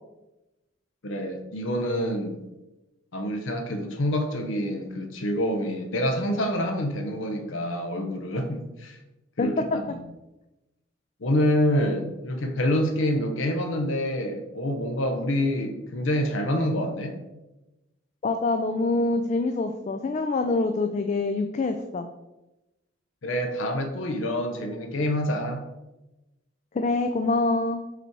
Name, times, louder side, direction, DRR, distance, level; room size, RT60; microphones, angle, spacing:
voice 1, 1.0-2.4 3.1-9.0 9.4-10.0 11.2-17.2 23.2-25.6, left 1 dB, 75° left, 4 dB, 0.7 m, -27 dB
voice 2, 18.2-22.1 26.7-27.8, left 3 dB, 35° left, 7 dB, 0.3 m, -25 dB
5.4 x 4.1 x 4.5 m, 1.0 s
head